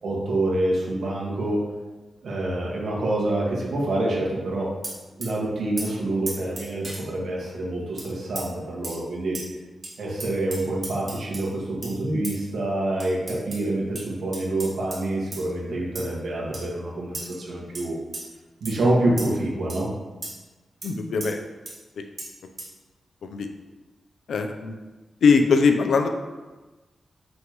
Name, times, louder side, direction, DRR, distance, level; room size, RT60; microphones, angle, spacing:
voice 1, 0.0-1.6 2.2-4.7 5.2-9.4 10.0-18.0 18.6-19.9, right 1 dB, 75° right, -4 dB, 1.9 m, -26 dB
sound 1, 4.8-5.3 5.8-5.9 6.3-7.0 8.0-8.1 8.4-8.5 8.8-9.0 9.3-9.4 9.8-9.9 10.2-11.5 11.8-12.0 12.2-12.3 13.0-13.6 14.0-14.1 14.3-15.0 15.3-15.5 15.9-16.1 16.5-16.6 17.1-17.4 17.7-17.8 18.1-18.2 18.6-18.7 19.2-19.3 19.7-19.8 20.2-20.3 20.8-20.9 21.2-21.3 21.7-21.8 22.2-22.3 22.6-22.7, right 2 dB, 40° right, 1.8 m, -35 dB
voice 2, 20.8-21.4 22.0-22.1 23.2-23.5 24.3-24.8 25.2-26.1, left 5 dB, 90° left, 6 dB, 0.6 m, -21 dB
7.1 x 6.2 x 3.1 m, 1.2 s
wide cardioid pair, 155°, 0 cm